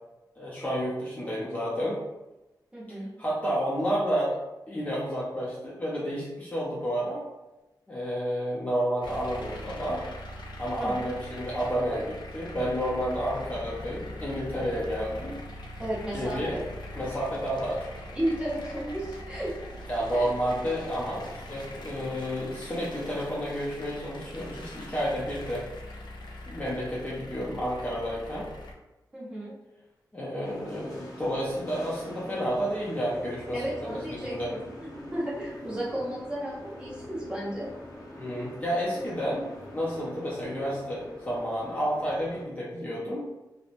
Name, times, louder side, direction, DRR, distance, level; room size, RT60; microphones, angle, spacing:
voice 1, 0.4-2.0 2.9-4.4 4.7-7.2 7.9-10.0 10.6-15.3 16.1-16.6 16.9-17.8 19.9-25.6 26.5-28.5 30.1-34.5 38.2-39.5 39.7-43.2, equal, 20° left, -8 dB, 0.5 m, -30 dB
voice 2, 2.7-3.1 10.8-11.1 15.8-16.7 18.1-19.5 20.1-20.3 29.1-29.5 33.5-37.7, right 1 dB, 15° right, -8 dB, 0.9 m, -33 dB
sound 1, 9.0-28.7, left 1 dB, 90° left, 0.4 m, -42 dB
sound 2, 30.4-42.4, left 1 dB, 55° left, 0.7 m, -45 dB
3.0 x 2.0 x 2.5 m, 1.0 s
wide cardioid pair, 150°, 8 cm